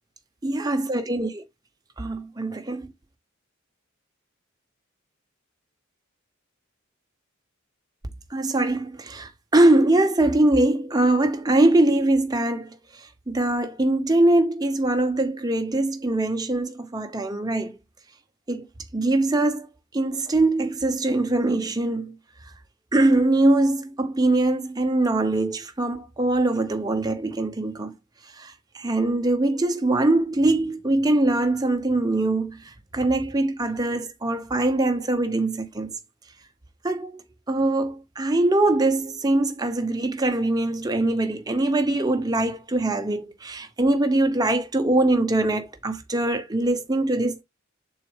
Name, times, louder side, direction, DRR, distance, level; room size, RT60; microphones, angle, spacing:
voice 1, 0.4-1.3 2.0-2.9 8.3-12.7 13.3-17.7 18.5-18.7 18.9-19.7 19.9-22.1 22.9-27.9 28.4-32.6 32.9-35.9 36.8-37.2 37.5-47.4, right 2 dB, 20° right, 0.9 m, -22 dB
7.2 x 4.0 x 3.3 m
head